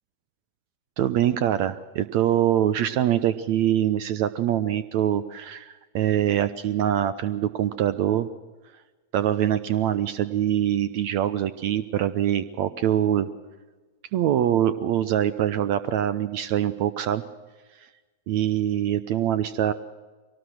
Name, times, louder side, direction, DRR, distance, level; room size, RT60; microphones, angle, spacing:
voice 1, 1.0-8.3 9.1-13.3 14.1-17.2 18.3-19.7, right 11 dB, 50° right, 14 dB, 0.8 m, -24 dB
23.0 x 19.0 x 6.3 m, 1.3 s
figure-of-eight pair, 95°, 0 cm